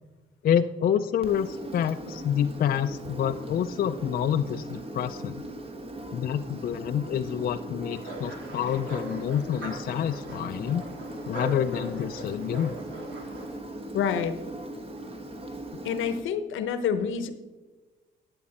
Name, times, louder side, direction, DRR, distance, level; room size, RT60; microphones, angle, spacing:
voice 1, 0.4-5.4 6.1-10.8 11.3-12.8, left 9 dB, 50° left, 8 dB, 0.4 m, -28 dB
Engine, 1.2-16.2, right 1 dB, 30° right, 1.2 m, -39 dB
sound 1, 7.9-13.6, equal, 70° right, 2.8 m, -40 dB
voice 2, 13.9-14.4 15.8-17.3, left 7 dB, 80° left, 11 dB, 0.8 m, -27 dB
11.0 x 7.2 x 4.2 m, 1.2 s
cardioid pair, 90°, 20 cm